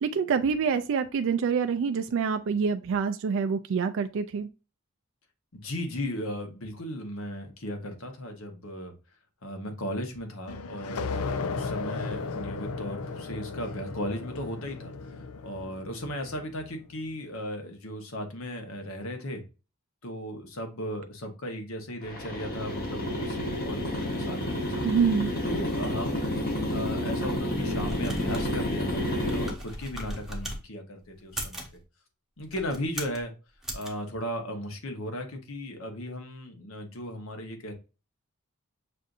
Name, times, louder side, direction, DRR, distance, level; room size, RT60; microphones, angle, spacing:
voice 1, 0.0-4.5 24.8-25.3, right 6 dB, 65° right, 0.3 m, -26 dB
voice 2, 5.5-8.9 9.4-14.9 15.4-19.4 20.0-24.9 25.4-26.3 26.7-31.6 32.4-33.3 33.7-37.7, equal, 65° left, 1.1 m, -36 dB
sound 1, 10.5-16.8, left 4 dB, 85° left, 0.5 m, -35 dB
sound 2, 22.0-29.5, left 1 dB, 45° left, 1.2 m, -30 dB
sound 3, 27.5-30.6 31.2-31.8 32.4-33.2 33.6-33.9, right 1 dB, ahead, 0.8 m, -38 dB
6.4 x 2.6 x 2.5 m
head